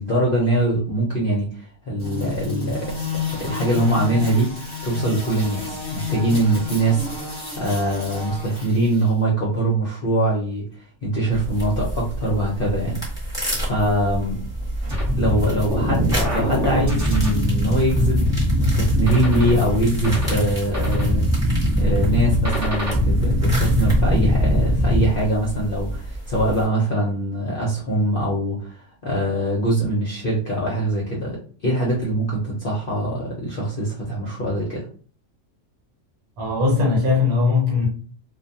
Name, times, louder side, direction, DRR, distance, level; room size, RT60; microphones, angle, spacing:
voice 1, 0.0-2.9 3.4-4.5 4.8-10.6 11.0-14.4 15.2-18.3 18.6-21.2 21.8-28.7 29.0-31.4 31.6-34.9, right 1 dB, 50° left, 0.7 m, -23 dB
sound 1, 2.0-9.1, left 4 dB, 25° left, 0.9 m, -31 dB
sound 2, 11.3-26.7, right 1 dB, 5° right, 1.0 m, -29 dB
sound 3, 14.9-25.1, left 1 dB, 25° right, 0.3 m, -21 dB
voice 2, 36.4-37.9, left 4 dB, 75° right, 1.3 m, -19 dB
2.5 x 2.2 x 2.7 m
omnidirectional pair, 1.5 m